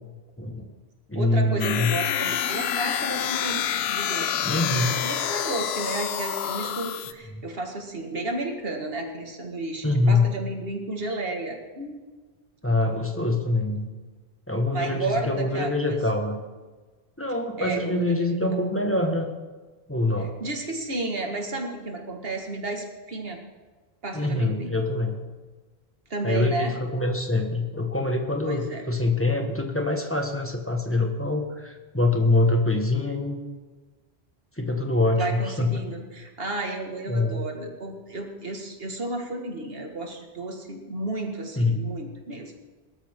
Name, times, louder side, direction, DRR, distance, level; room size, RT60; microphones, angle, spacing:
voice 1, 0.4-0.7 1.1-2.0 4.4-5.0 9.8-10.4 12.6-13.9 14.5-16.4 17.2-19.3 19.9-20.3 24.1-25.2 26.2-33.4 34.6-35.9 37.1-37.4 41.6-41.8, left 2 dB, 10° left, 3 dB, 1.5 m, -24 dB
voice 2, 1.1-4.5 4.9-12.0 12.8-13.0 14.7-16.0 17.6-18.4 20.2-23.4 24.0-24.7 26.1-26.8 28.4-28.9 35.1-42.5, right 2 dB, 65° right, 3 dB, 2.1 m, -32 dB
sound 1, 1.6-7.1, left 9 dB, 75° left, 0.9 m, -27 dB
19.0 x 13.0 x 3.7 m, 1.3 s
omnidirectional pair, 1.1 m